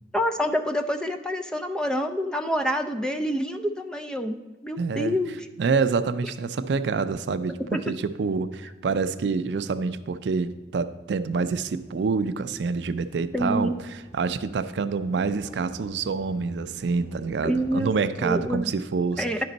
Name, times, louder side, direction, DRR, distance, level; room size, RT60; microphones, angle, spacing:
voice 1, 0.1-4.4 4.6-5.5 7.7-7.8 13.3-13.7 17.4-17.9 18.2-18.7 19.2-19.4, equal, 5° left, 6 dB, 0.3 m, -27 dB
voice 2, 4.8-5.2 5.6-19.3, right 4 dB, 80° right, 11 dB, 0.4 m, -27 dB
sound 1, 11.3-17.8, equal, 50° left, 1.8 m, -49 dB
10.5 x 5.2 x 3.9 m, 1.2 s
head